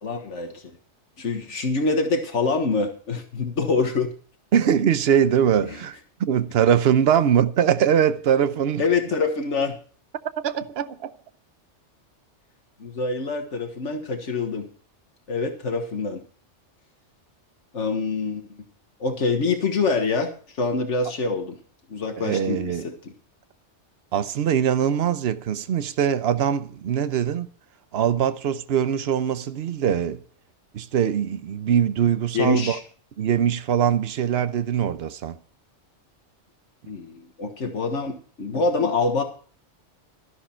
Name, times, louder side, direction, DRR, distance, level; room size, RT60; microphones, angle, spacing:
voice 1, 0.0-0.7 1.2-4.1 5.7-5.8 8.8-9.7 12.8-14.7 15.3-16.2 17.7-18.6 19.0-21.6 21.9-23.1 32.3-32.8 36.9-39.2, left 4 dB, 75° left, 1.7 m, -25 dB
voice 2, 4.5-8.8 10.4-11.1 22.2-22.9 24.1-27.5 27.9-30.2 30.7-32.8 33.2-35.4, right 8 dB, 60° right, 1.0 m, -22 dB
12.5 x 11.0 x 4.4 m
omnidirectional pair, 1.2 m